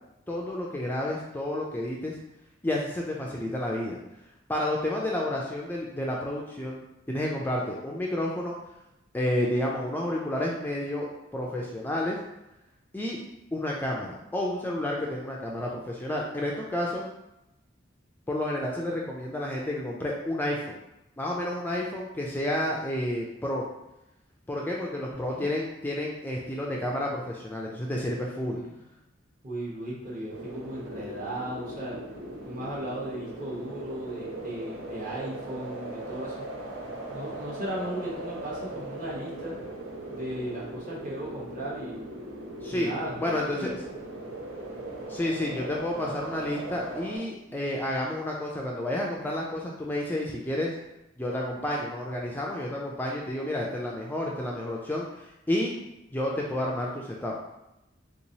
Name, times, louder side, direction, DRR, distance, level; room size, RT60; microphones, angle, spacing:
voice 1, 0.3-2.2 2.6-4.0 4.5-6.8 7.1-8.6 9.1-12.2 12.9-13.2 13.5-17.0 18.3-20.8 21.2-23.6 24.5-28.6 42.6-42.9 43.2-43.7 45.1-50.7 51.2-55.7 56.1-57.3, left 1 dB, 10° left, -3 dB, 0.3 m, -30 dB
voice 2, 28.4-28.8 29.4-32.0 32.4-36.4 37.1-39.6 40.1-42.0 42.7-43.2 43.5-43.7 45.5-45.6, right 1 dB, 45° right, -5 dB, 1.0 m, -36 dB
sound 1, 30.3-47.2, right 1 dB, 85° right, 0.7 m, -39 dB
3.5 x 3.0 x 2.7 m, 0.91 s
head